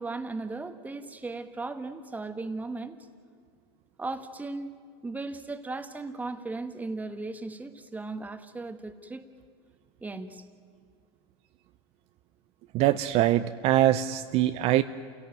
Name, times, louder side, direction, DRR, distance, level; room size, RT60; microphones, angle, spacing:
voice 1, 0.0-3.0 4.0-4.7 5.0-9.3 10.0-10.4, right 3 dB, 10° right, 9 dB, 1.5 m, -36 dB
voice 2, 12.7-14.8, right 13 dB, 50° right, 11 dB, 0.7 m, -23 dB
28.0 x 17.0 x 9.2 m, 2.1 s
supercardioid pair, 120°, 14 cm